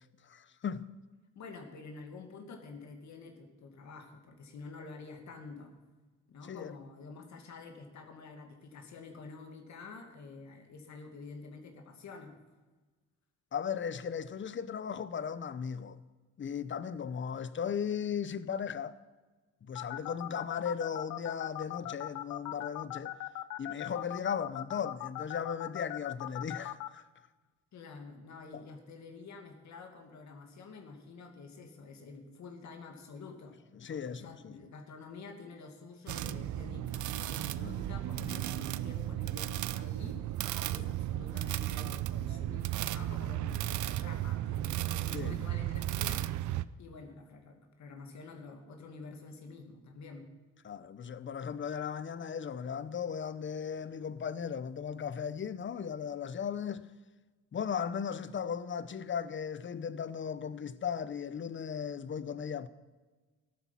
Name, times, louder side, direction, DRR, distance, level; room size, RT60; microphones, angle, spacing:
voice 1, 0.2-0.9 6.4-6.7 13.5-16.0 16.4-19.0 19.6-23.2 23.6-27.1 28.5-28.6 33.7-34.6 37.6-37.8 40.7-40.9 45.1-45.6 50.6-56.9 57.5-62.7, left 7 dB, 40° left, 0.8 m, -37 dB
voice 2, 1.3-5.7 6.3-12.3 27.7-33.6 33.9-46.4 46.8-50.3, left 4 dB, 65° left, 2.4 m, -48 dB
sound 1, 19.7-26.9, left 15 dB, 90° left, 0.7 m, -39 dB
sound 2, 36.1-46.6, right 14 dB, 70° right, 0.6 m, -34 dB
14.0 x 12.0 x 5.7 m
cardioid pair, 90°, 30 cm